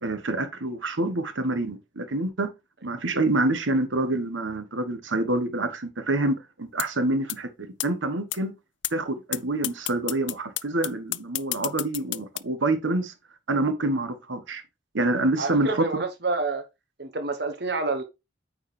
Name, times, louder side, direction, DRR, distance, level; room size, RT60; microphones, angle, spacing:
voice 1, 0.0-2.5 2.8-8.5 8.9-13.1 13.5-14.6 14.9-16.0, right 2 dB, 85° right, 1.3 m, -27 dB
sound 1, 6.8-6.9 7.3-7.4 7.8-7.9 8.3-8.4 8.8-8.9 9.3-9.4 9.6-12.4, left 18 dB, 75° left, 0.4 m, -29 dB
voice 2, 15.4-16.6 17.0-18.0, right 3 dB, 55° right, 1.0 m, -28 dB
8.8 x 4.9 x 3.2 m
head